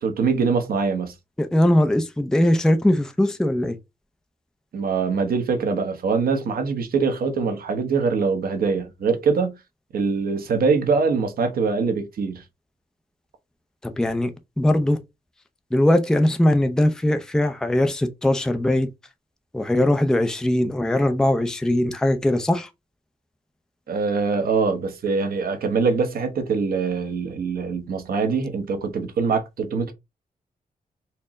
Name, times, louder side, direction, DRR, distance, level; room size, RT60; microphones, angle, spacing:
voice 1, 0.0-1.1 4.7-9.6 9.9-12.4 23.9-29.9, right 5 dB, 80° right, 0.9 m, -23 dB
voice 2, 1.4-3.8 13.8-14.3 14.6-15.0 15.7-18.9 19.5-22.7, left 1 dB, 5° left, 0.4 m, -20 dB
4.4 x 2.0 x 3.6 m
wide cardioid pair, 135°, 15 cm